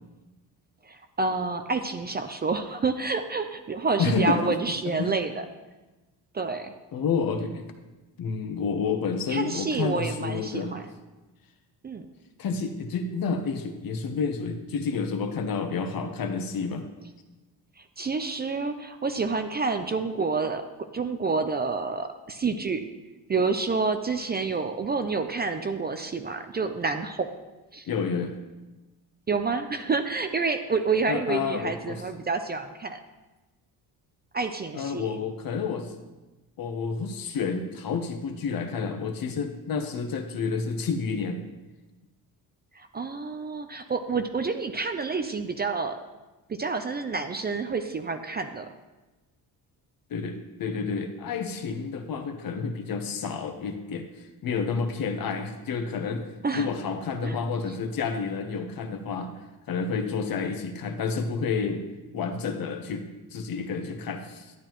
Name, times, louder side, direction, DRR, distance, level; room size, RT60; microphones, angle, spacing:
voice 1, 0.8-5.5 6.3-6.7 9.3-10.8 11.8-12.1 17.8-20.7 20.9-22.8 23.3-27.3 27.7-27.9 29.3-33.0 34.3-35.1 42.8-46.0 46.5-48.7 56.4-56.7 57.2-57.4, right 4 dB, 25° right, 8 dB, 0.5 m, -28 dB
voice 2, 4.0-4.5 5.0-5.2 6.9-7.6 8.2-10.7 12.4-16.9 27.9-28.3 31.1-32.0 34.7-35.9 36.6-41.4 50.1-54.1 54.4-56.2 56.5-59.3 59.7-61.8 62.1-63.1 63.3-64.5, left 5 dB, 55° left, 6 dB, 1.1 m, -29 dB
11.0 x 8.7 x 3.0 m, 1.1 s
cardioid pair, 105°, 41 cm